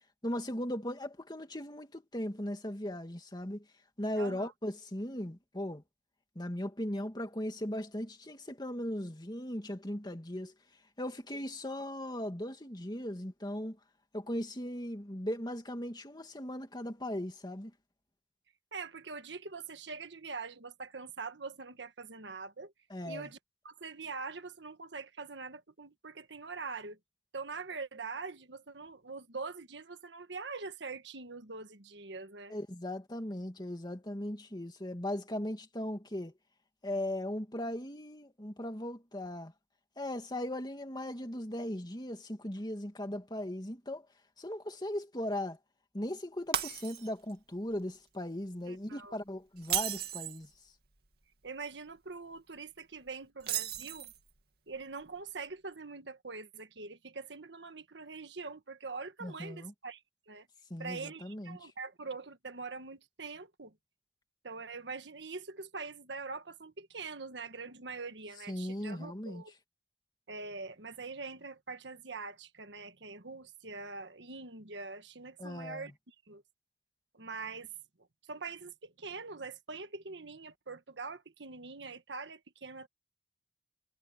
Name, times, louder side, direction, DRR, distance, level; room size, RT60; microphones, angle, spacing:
voice 1, 0.2-3.6 4.0-5.8 6.4-10.5 11.0-13.8 14.1-17.7 22.9-23.3 32.5-36.3 36.8-39.5 40.0-44.1 44.4-45.6 45.9-50.5 59.2-59.7 60.7-61.7 68.5-69.4 75.4-75.9, left 1 dB, 25° left, 2.3 m, -38 dB
voice 2, 4.2-4.5 18.7-22.7 23.0-23.4 23.6-27.0 27.3-32.5 48.6-49.2 51.4-54.1 54.7-60.0 60.3-60.5 60.8-63.7 64.4-69.5 70.3-76.4 77.1-77.7 78.3-82.9, right 4 dB, 85° right, 1.5 m, -43 dB
Shatter, 46.5-47.3 47.7-48.0 49.6-50.4 53.4-54.3, right 10 dB, 60° right, 2.4 m, -35 dB
head